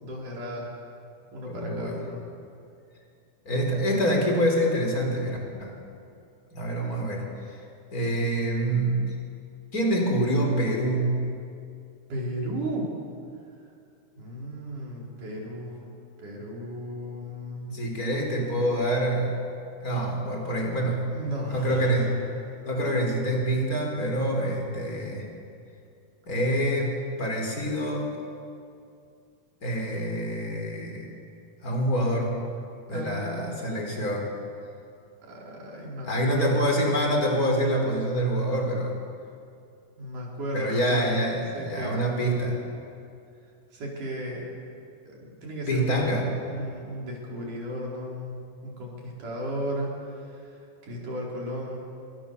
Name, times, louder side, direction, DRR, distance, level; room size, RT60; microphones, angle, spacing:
voice 1, 0.0-0.7 1.3-2.2 12.1-12.9 14.2-15.8 16.2-17.8 21.1-22.1 32.9-34.0 35.3-36.6 40.0-41.1 41.5-42.1 43.7-44.5 45.1-50.6 50.8-51.8, equal, 75° right, -3 dB, 6.4 m, -35 dB
voice 2, 1.5-2.0 3.4-5.7 6.5-7.6 7.9-9.1 9.7-11.2 17.7-19.4 19.8-21.1 21.5-22.1 22.6-25.3 26.3-28.1 29.6-31.1 31.6-32.4 32.9-34.3 36.0-38.9 40.5-42.6 45.7-46.3, right 1 dB, 25° left, 1 dB, 4.8 m, -26 dB
27.0 x 24.0 x 7.0 m, 2.5 s
omnidirectional pair, 3.6 m